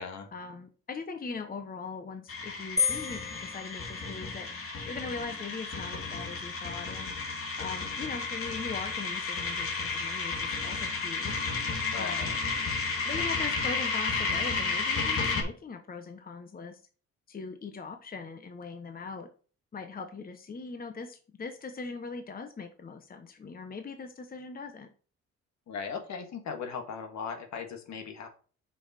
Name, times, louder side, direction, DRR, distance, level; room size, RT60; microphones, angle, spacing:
voice 1, 0.3-4.5 4.8-7.1 7.6-11.5 12.0-12.4 13.0-16.8 17.3-19.3 19.7-24.9, left 4 dB, 30° left, 7 dB, 1.0 m, -40 dB
sound 1, 2.3-15.4, left 4 dB, 45° left, 2.4 m, -32 dB
sound 2, 2.8-4.5, left 6 dB, 10° left, 1.6 m, -32 dB
voice 2, 11.9-12.4 25.7-28.3, left 6 dB, 65° left, 5 dB, 1.7 m, -38 dB
6.4 x 5.5 x 4.2 m, 0.38 s
cardioid pair, 90°, 30 cm